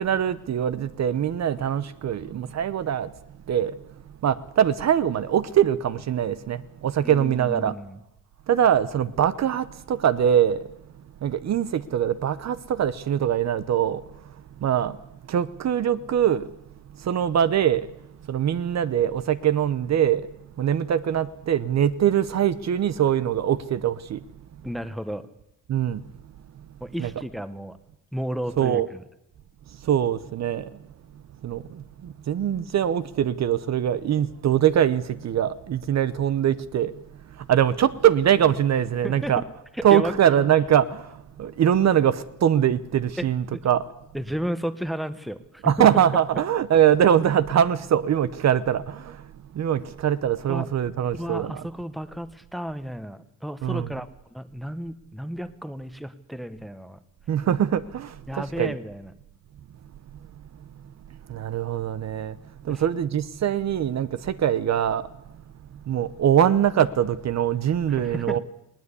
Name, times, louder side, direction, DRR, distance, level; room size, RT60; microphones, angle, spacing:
voice 1, 0.0-3.1 3.5-3.8 4.2-7.8 8.5-10.7 11.2-15.0 15.3-16.5 17.0-17.9 18.3-20.3 20.6-24.2 25.7-26.0 27.0-27.1 28.6-28.9 29.8-30.8 31.4-37.0 37.3-39.4 39.8-43.8 45.6-51.6 53.6-53.9 57.3-58.8 61.3-62.4 62.6-65.1 65.9-68.4, right 9 dB, 50° right, 0.8 m, -23 dB
voice 2, 7.0-8.0 24.6-25.3 26.8-27.8 28.1-29.0 39.0-39.3 39.8-40.1 43.2-43.3 43.5-43.6 44.1-45.9 50.5-50.7 51.1-57.0 58.3-59.1 62.7-62.8 67.9-68.4, equal, ahead, 1.1 m, -33 dB
19.5 x 18.5 x 8.3 m
cardioid pair, 120°, 35 cm